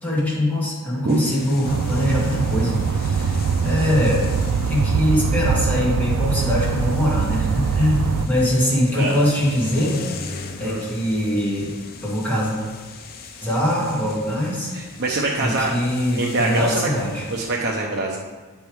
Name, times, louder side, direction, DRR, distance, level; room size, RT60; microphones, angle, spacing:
voice 1, 0.0-4.2 4.7-10.0 10.6-11.7 12.0-12.5 13.4-14.7 15.4-17.3, left 1 dB, 10° left, -6 dB, 1.8 m, -22 dB
sound 1, 1.1-17.5, left 4 dB, 45° left, 0.6 m, -40 dB
sound 2, 1.6-8.3, right 5 dB, 75° right, 0.3 m, -22 dB
voice 2, 14.7-15.7 16.2-16.9 17.3-18.2, right 2 dB, 50° right, -2 dB, 0.7 m, -24 dB
8.0 x 3.5 x 4.7 m, 1.4 s
head